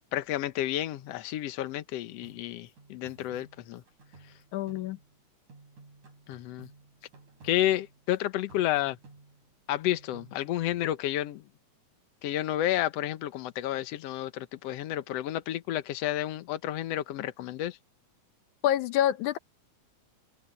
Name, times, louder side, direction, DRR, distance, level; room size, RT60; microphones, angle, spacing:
voice 1, 0.1-3.8 6.3-6.7 7.4-9.0 9.7-11.5 12.2-17.8, left 13 dB, 65° left, 1.9 m, -31 dB
sound 1, 2.2-5.2 5.5-8.2 8.5-9.6 9.9-10.9, right 3 dB, 85° right, 7.7 m, -55 dB
voice 2, 4.5-5.0 18.6-19.4, left 11 dB, 85° left, 2.4 m, -26 dB
omnidirectional pair, 3.4 m